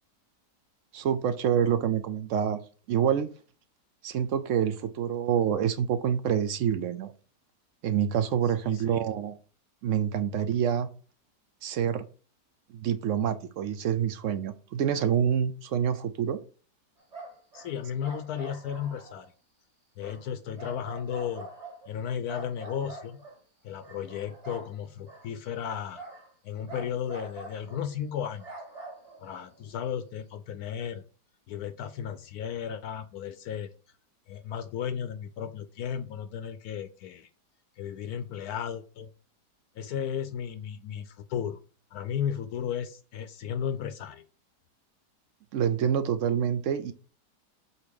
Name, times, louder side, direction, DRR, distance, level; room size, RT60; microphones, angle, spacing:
voice 1, 0.9-2.6 2.9-3.3 4.0-7.1 7.8-9.4 9.8-10.9 11.6-12.0 12.7-16.4 45.5-46.9, right 8 dB, 70° right, 0.8 m, -27 dB
voice 2, 8.4-9.0 17.5-19.3 20.0-21.5 21.9-23.2 23.6-26.0 26.4-28.5 29.2-31.0 31.5-33.7 34.3-37.3 37.8-39.1 39.8-41.6 41.9-44.2, left 8 dB, 70° left, 1.0 m, -34 dB
sound 1, 17.0-19.3 20.0-20.2 20.6-22.0 22.3-23.4 23.8-24.7 25.1-25.3 25.6-26.3 26.7-27.8 28.1-29.8, right 2 dB, 25° right, 1.7 m, -45 dB
7.9 x 2.9 x 5.2 m
omnidirectional pair, 1.8 m